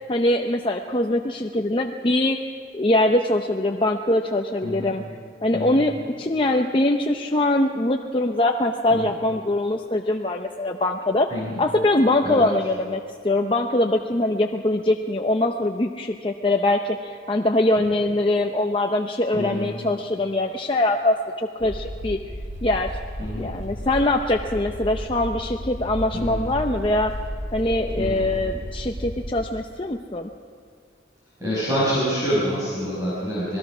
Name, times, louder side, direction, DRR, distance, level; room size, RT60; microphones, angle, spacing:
voice 1, 0.1-2.4 2.7-5.0 5.4-22.2 22.6-23.0 23.3-27.1 27.5-30.3, left 1 dB, 25° left, 3 dB, 0.7 m, -23 dB
voice 2, 4.6-4.9 5.5-5.8 8.9-9.1 11.3-11.6 12.2-12.5 19.3-19.7 23.2-23.5 26.1-26.4 28.0-28.2 31.4-33.6, equal, 15° right, -9 dB, 5.8 m, -26 dB
sound 1, 21.6-29.4, equal, 40° right, 5.5 m, -33 dB
26.0 x 19.5 x 6.1 m, 2.4 s
head